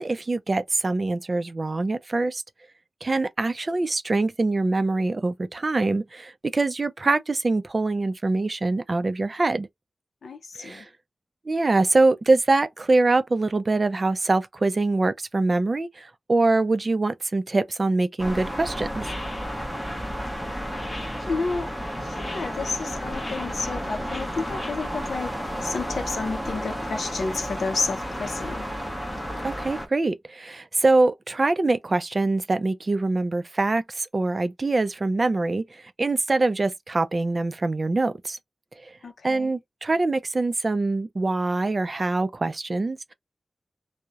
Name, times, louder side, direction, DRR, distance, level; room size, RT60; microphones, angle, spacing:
voice 1, 0.0-2.4 3.0-9.7 10.6-10.9 11.5-19.1 29.4-38.4 38.8-38.9 39.2-43.1, right 2 dB, 35° right, 0.3 m, -24 dB
voice 2, 10.2-10.9 21.2-21.7 22.0-25.3 25.6-28.7 39.0-39.5, left 4 dB, 85° left, 0.4 m, -31 dB
sound 1, 18.2-29.9, equal, 5° left, 0.7 m, -32 dB
sound 2, 19.0-25.1, left 1 dB, 40° left, 0.8 m, -43 dB
2.3 x 2.0 x 2.7 m
wide cardioid pair, 130°, 0 cm